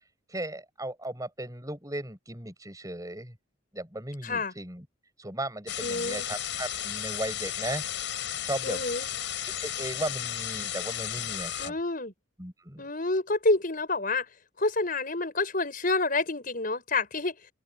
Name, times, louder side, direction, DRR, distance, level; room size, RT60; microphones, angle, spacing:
voice 1, 0.3-3.4 3.7-4.9 5.2-7.8 8.4-8.8 9.4-11.8 12.4-12.8, right 1 dB, 15° right, 7.3 m, -36 dB
voice 2, 4.2-4.5 5.8-6.2 8.6-9.1 11.6-12.1 12.8-14.3 14.6-17.4, left 3 dB, 45° left, 5.9 m, -28 dB
sound 1, 5.7-11.7, left 10 dB, 65° left, 7.4 m, -34 dB
open air
head